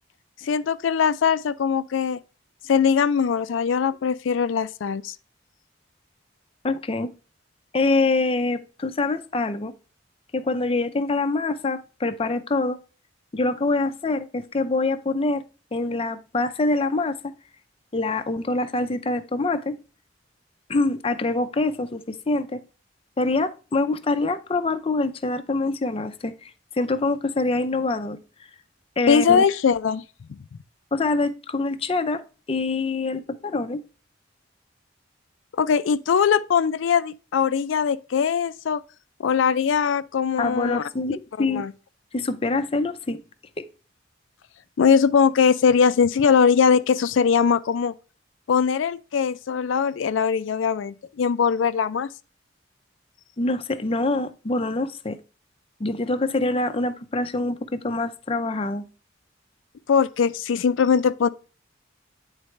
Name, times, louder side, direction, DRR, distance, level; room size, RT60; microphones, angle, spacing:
voice 1, 0.4-2.2 2.6-5.1 29.1-30.0 35.6-38.8 39.2-40.8 41.4-41.7 44.8-47.9 48.5-52.1 59.9-61.3, left 6 dB, 85° left, 0.4 m, -21 dB
voice 2, 6.6-7.1 7.7-9.7 10.3-12.8 13.3-15.4 15.7-17.3 17.9-19.8 20.7-22.6 23.2-28.2 29.0-29.4 30.9-32.2 32.5-33.8 40.4-41.6 42.1-43.2 43.6-43.7 53.4-55.2 55.8-58.8, left 3 dB, 30° left, 0.5 m, -25 dB
9.6 x 4.0 x 3.2 m
head